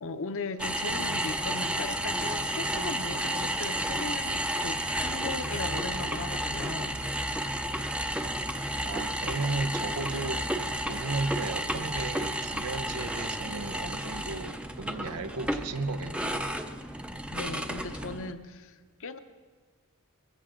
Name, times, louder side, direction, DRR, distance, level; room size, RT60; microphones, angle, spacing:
voice 1, 0.0-7.0 17.3-19.2, left 3 dB, 60° left, 0.8 m, -38 dB
sound 1, 0.6-18.3, right 1 dB, 5° right, 0.5 m, -32 dB
voice 2, 8.8-10.5 10.9-16.5, right 3 dB, 85° right, 0.7 m, -34 dB
22.0 x 14.5 x 3.7 m
head